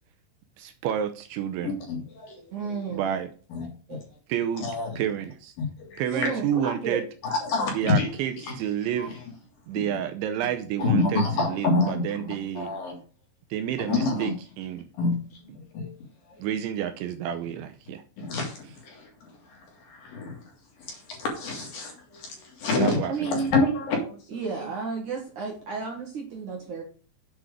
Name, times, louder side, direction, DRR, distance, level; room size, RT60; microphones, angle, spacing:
voice 1, 0.6-1.7 2.9-3.3 4.3-4.7 5.0-5.5 6.0-7.0 7.7-9.1 9.7-12.7 13.5-14.9 16.4-18.0 22.8-23.1, right 10 dB, 80° right, 8 dB, 2.9 m, -30 dB
voice 2, 1.6-2.8 3.5-4.0 4.6-5.0 5.8-6.0 7.2-8.1 8.4-8.5 9.0-9.1 10.8-12.3 12.5-13.0 13.9-14.3 15.0-15.2 15.4-15.9 16.3-16.4 18.2-20.4 20.8-23.0 23.2-24.7, left 3 dB, 55° left, 1 dB, 3.3 m, -28 dB
voice 3, 2.5-3.2 3.9-4.0 6.1-7.0 23.1-23.5 24.3-26.8, right 4 dB, 50° right, 0 dB, 2.6 m, -32 dB
8.2 x 6.1 x 5.0 m, 0.40 s
omnidirectional pair, 5.7 m